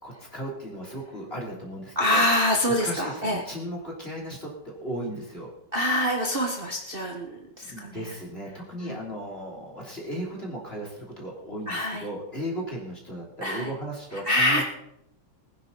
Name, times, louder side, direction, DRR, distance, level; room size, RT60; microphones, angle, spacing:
voice 1, 0.0-2.2 2.7-5.5 7.6-14.6, right 1 dB, 30° left, -2 dB, 3.3 m, -36 dB
voice 2, 1.9-3.4 5.7-8.1 8.8-9.0 11.7-12.1 13.4-13.7 14.2-14.6, left 1 dB, 30° right, 0 dB, 1.3 m, -25 dB
21.0 x 10.0 x 4.0 m, 0.79 s
omnidirectional pair, 2.2 m